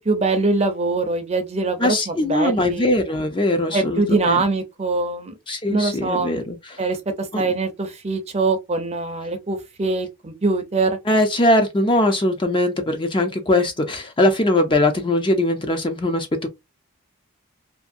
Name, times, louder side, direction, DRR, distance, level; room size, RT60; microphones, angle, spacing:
voice 1, 0.1-2.9 3.7-5.3 5.7-6.4 6.8-7.0 7.4-11.0, right 3 dB, 30° right, 0.5 m, -23 dB
voice 2, 1.8-4.4 5.5-6.8 7.3-7.4 11.1-16.5, left 1 dB, 20° left, 0.4 m, -21 dB
2.6 x 2.6 x 2.5 m
head